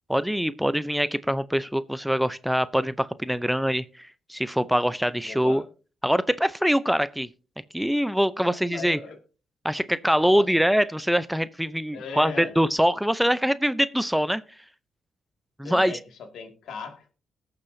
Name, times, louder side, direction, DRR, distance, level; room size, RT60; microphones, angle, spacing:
voice 1, 0.1-5.6 6.0-7.3 7.7-9.0 9.6-14.4 15.6-15.9, equal, 5° right, 0.6 m, -24 dB
voice 2, 5.2-5.7 8.4-9.2 10.2-10.5 11.9-12.5 15.6-17.1, left 5 dB, 75° left, 2.1 m, -38 dB
20.0 x 6.8 x 2.7 m
supercardioid pair, 50°, 0 cm